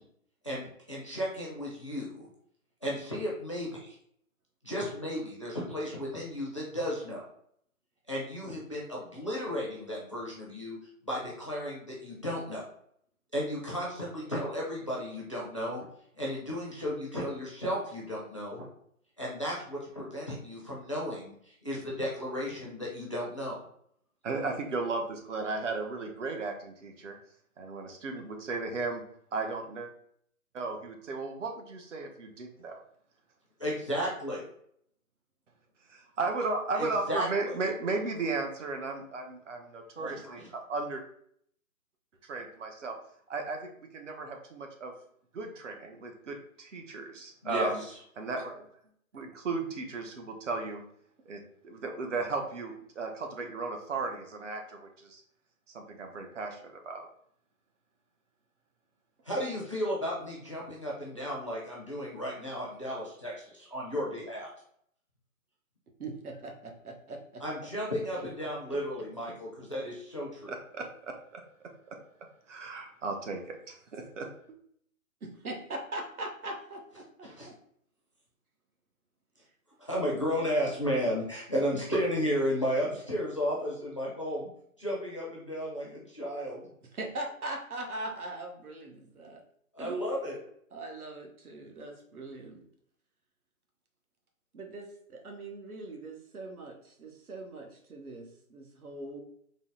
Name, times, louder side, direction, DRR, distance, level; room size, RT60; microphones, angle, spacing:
voice 1, 0.4-2.3 2.8-3.9 4.6-7.3 8.1-10.8 11.0-12.6 13.3-15.9 16.2-18.7 19.2-23.6 33.6-34.4 36.7-37.6 39.9-40.5 47.4-47.9 59.2-64.5 67.4-70.5 77.2-77.5 79.8-84.5 84.8-86.7 89.7-90.4, equal, 25° left, -4 dB, 0.4 m, -34 dB
voice 2, 24.2-27.2 27.6-29.0 29.3-29.9 30.5-32.8 35.9-41.0 42.2-42.9 43.3-44.9 45.3-47.8 48.2-48.7 49.1-50.8 51.3-55.2 55.7-57.1 70.5-71.4 71.9-72.0 72.5-74.3, right 3 dB, 55° right, 4 dB, 0.8 m, -35 dB
voice 3, 66.0-67.4 68.1-68.2 75.2-77.5 86.9-89.4 89.8-90.0 90.7-92.6 94.5-99.2, right 2 dB, 90° right, 2 dB, 1.1 m, -41 dB
3.9 x 2.0 x 3.6 m, 0.67 s
hypercardioid pair, 160°, 43 cm